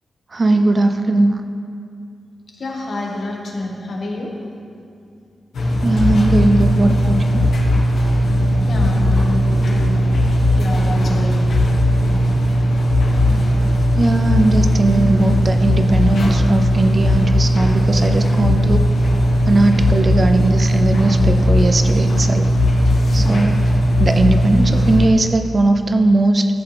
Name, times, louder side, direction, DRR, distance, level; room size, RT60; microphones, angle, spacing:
voice 1, 0.3-1.4 5.8-7.1 14.0-18.8 19.5-22.5 23.1-23.6 24.0-26.5, right 2 dB, 35° right, 7 dB, 0.5 m, -18 dB
voice 2, 2.6-4.3 8.6-9.9 10.5-11.5, left 2 dB, 55° left, -1 dB, 1.7 m, -27 dB
sound 1, 5.5-25.1, equal, 85° left, 1.5 m, -17 dB
15.0 x 8.1 x 3.5 m, 2.4 s
wide cardioid pair, 120°, 0 cm